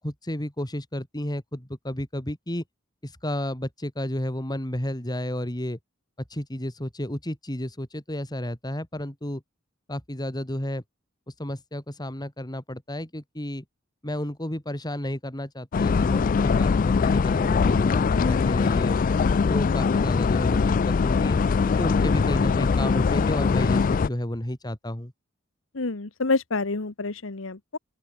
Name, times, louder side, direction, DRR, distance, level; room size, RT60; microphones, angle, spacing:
voice 1, 0.0-2.6 3.0-5.8 6.3-9.4 9.9-10.8 11.4-13.6 14.0-19.0 19.5-21.4 21.8-25.1, left 1 dB, 20° left, 3.0 m, -31 dB
sound 1, 15.7-24.1, left 5 dB, 45° left, 0.4 m, -22 dB
voice 2, 25.7-27.8, left 3 dB, 70° left, 1.3 m, -28 dB
open air
head